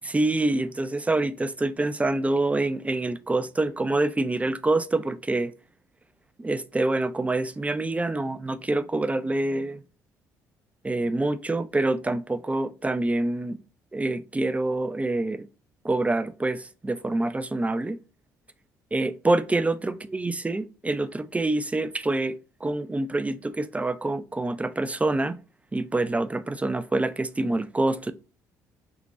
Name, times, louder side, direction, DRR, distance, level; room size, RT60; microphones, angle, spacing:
voice 1, 0.0-5.5 6.4-9.8 10.8-13.6 13.9-15.5 15.8-18.0 18.9-25.4 25.7-28.1, right 2 dB, 15° right, 0.4 m, -26 dB
3.6 x 2.9 x 3.7 m
hypercardioid pair, 50°, 9 cm